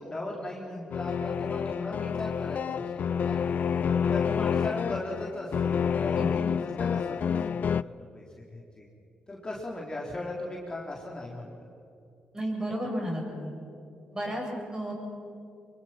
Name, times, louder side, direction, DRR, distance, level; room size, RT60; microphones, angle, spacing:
voice 1, 0.0-3.6 4.1-8.9 9.3-11.5, left 1 dB, 25° left, -3 dB, 4.0 m, -38 dB
sound 1, 0.9-7.8, left 7 dB, 55° left, 0.4 m, -28 dB
voice 2, 12.3-13.5 14.1-14.9, equal, 20° right, -1 dB, 7.9 m, -32 dB
25.5 x 23.0 x 6.0 m, 2.7 s
cardioid pair, 75°, 3 cm